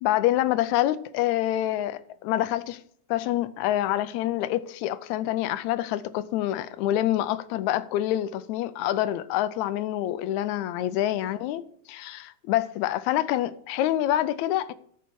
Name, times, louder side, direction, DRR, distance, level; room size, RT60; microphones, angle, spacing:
voice 1, 0.0-2.8 3.1-11.6 11.9-14.7, left 13 dB, 80° left, 1.8 m, -26 dB
13.5 x 5.8 x 4.6 m
omnidirectional pair, 3.4 m